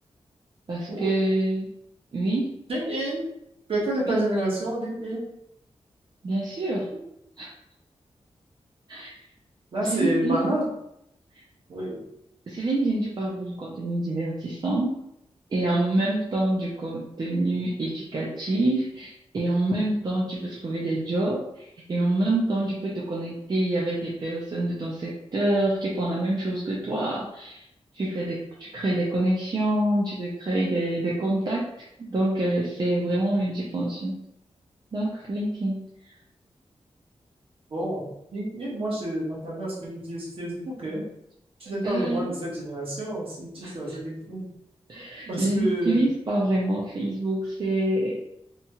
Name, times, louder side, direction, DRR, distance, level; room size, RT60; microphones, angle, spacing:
voice 1, 0.7-1.7 2.1-2.6 4.1-4.2 6.2-7.0 7.4-7.5 8.9-9.2 9.8-10.5 12.5-15.0 15.5-27.6 27.9-34.2 34.9-35.8 41.8-42.4 43.6-44.0 44.9-48.2, right 1 dB, 40° right, -4 dB, 0.4 m, -26 dB
voice 2, 2.7-3.2 3.7-5.2 9.7-10.7 11.7-12.0 37.7-41.0 41.6-44.5 45.3-46.0, right 1 dB, 65° right, -5 dB, 1.0 m, -29 dB
2.8 x 2.3 x 2.8 m, 0.80 s
wide cardioid pair, 165°, 11 cm